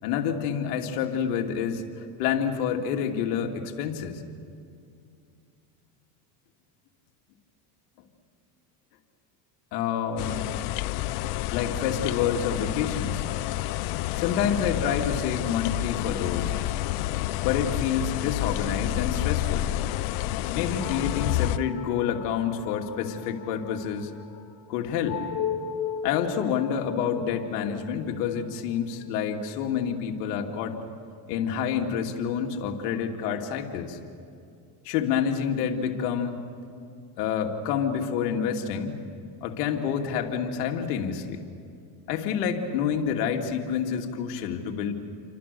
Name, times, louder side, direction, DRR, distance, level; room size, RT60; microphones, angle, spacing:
voice 1, 0.0-4.2 9.7-10.4 11.5-13.3 14.2-16.5 17.4-19.7 20.5-24.1 24.7-25.2 26.0-30.8 31.3-34.0 34.8-36.4 37.2-39.0 39.4-41.4 42.1-44.9, left 7 dB, 85° left, 3 dB, 2.7 m, -28 dB
sound 1, 10.2-21.6, left 15 dB, 65° left, 0.9 m, -29 dB
sound 2, 20.8-29.6, left 8 dB, 50° left, 4.7 m, -38 dB
29.5 x 25.5 x 6.9 m, 2.5 s
supercardioid pair, 115°, 46 cm